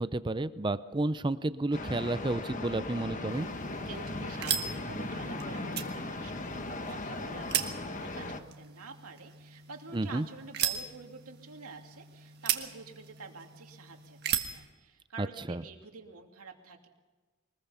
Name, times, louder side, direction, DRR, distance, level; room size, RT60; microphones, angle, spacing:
voice 1, 0.0-3.5 9.9-10.3 15.2-15.6, right 2 dB, 20° right, 13 dB, 0.5 m, -31 dB
sound 1, 1.7-8.4, left 2 dB, 35° left, 1.2 m, -38 dB
sound 2, 3.3-14.7, right 9 dB, 45° right, 1.5 m, -38 dB
voice 2, 3.8-16.9, right 4 dB, 85° right, 3 dB, 2.6 m, -48 dB
23.5 x 20.5 x 5.7 m, 1.3 s
head